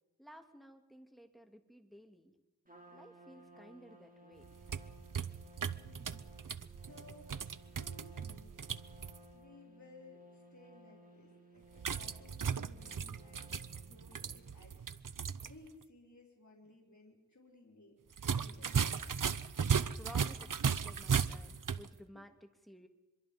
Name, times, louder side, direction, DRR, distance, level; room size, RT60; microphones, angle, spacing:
voice 1, 0.2-2.3 2.9-4.4 20.0-22.9, equal, ahead, 5 dB, 2.7 m, -55 dB
Trumpet, 2.7-14.8, right 1 dB, 25° right, 4.2 m, -59 dB
sound 1, 4.4-9.2 11.8-15.5 15.8-15.9 18.1-21.9, right 7 dB, 75° right, 0.7 m, -36 dB
voice 2, 5.7-8.5 9.3-13.5 13.8-18.0 18.4-19.2 22.1-22.2, left 2 dB, 60° left, 0 dB, 4.2 m, -59 dB
25.5 x 22.5 x 5.4 m, 1.0 s
wide cardioid pair, 50°, 32 cm